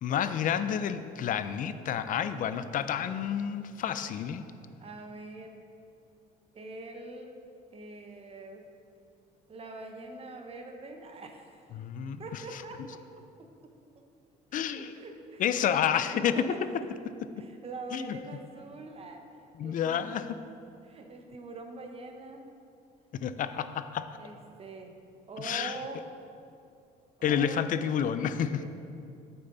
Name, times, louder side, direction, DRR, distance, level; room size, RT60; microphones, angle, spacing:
voice 1, 0.0-4.4 11.7-12.2 14.5-14.9 15.4-16.6 17.9-18.2 19.6-20.2 23.1-24.1 25.4-25.7 27.2-28.6, left 8 dB, 50° left, 12 dB, 0.5 m, -29 dB
voice 2, 2.3-2.8 4.8-5.7 6.5-7.4 7.7-8.6 9.5-11.6 12.2-13.0 13.4-13.5 13.9-14.0 14.5-15.8 16.3-16.7 17.4-19.3 19.6-20.2 20.8-22.4 24.2-25.0 25.3-26.1 27.2-27.8 28.6-28.7, right 3 dB, 35° right, 4 dB, 0.9 m, -44 dB
9.0 x 7.0 x 3.9 m, 2.5 s
cardioid pair, 110°, 17 cm